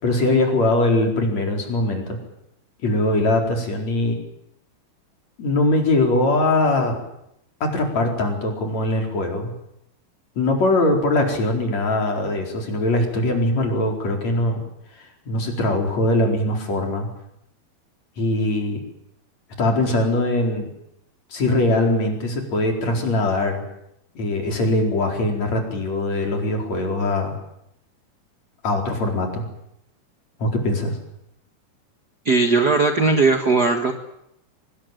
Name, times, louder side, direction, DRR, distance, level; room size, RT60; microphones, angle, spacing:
voice 1, 0.0-2.2 2.8-4.2 5.4-7.0 7.6-9.5 10.4-14.6 15.3-17.1 18.2-18.8 19.6-20.7 21.3-23.6 24.2-27.4 28.6-29.5 30.4-31.0, left 2 dB, 45° left, 2 dB, 5.6 m, -21 dB
voice 2, 32.2-33.9, right 3 dB, 45° right, 6 dB, 1.3 m, -18 dB
24.5 x 20.5 x 9.2 m, 0.79 s
omnidirectional pair, 4.3 m